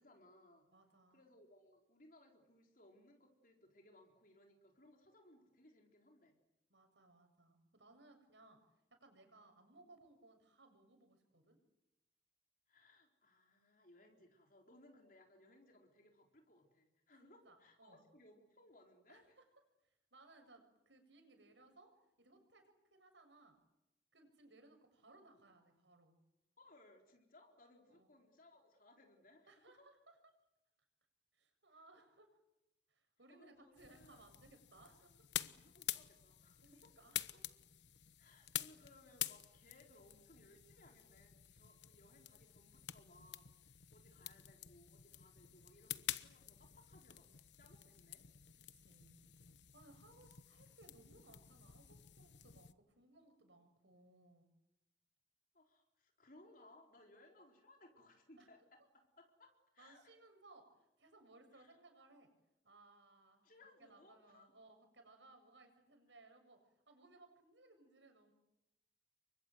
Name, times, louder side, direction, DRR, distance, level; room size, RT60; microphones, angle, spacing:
voice 1, 0.0-0.7 1.1-6.4 12.7-19.4 26.6-29.9 33.3-34.3 35.4-36.9 38.2-47.3 47.6-48.2 55.5-58.8 59.2-60.2 61.5-61.8 63.4-64.5, left 1 dB, 50° left, 2 dB, 4.1 m, -65 dB
voice 2, 0.7-1.2 6.7-8.6 9.0-11.6 14.2-14.3 15.0-15.1 17.2-18.0 19.1-19.5 19.8-21.9 22.2-23.6 24.1-26.2 27.9-28.1 29.5-30.1 31.3-32.3 32.9-35.3 36.6-37.4 48.7-49.2 49.7-54.5 58.4-58.5 59.8-62.3 62.6-63.5 63.8-66.6 66.9-68.3, right 2 dB, 80° right, 6 dB, 7.4 m, -64 dB
sound 1, 33.8-52.7, left 12 dB, 75° left, 1.1 m, -49 dB
29.0 x 24.0 x 7.8 m, 0.92 s
head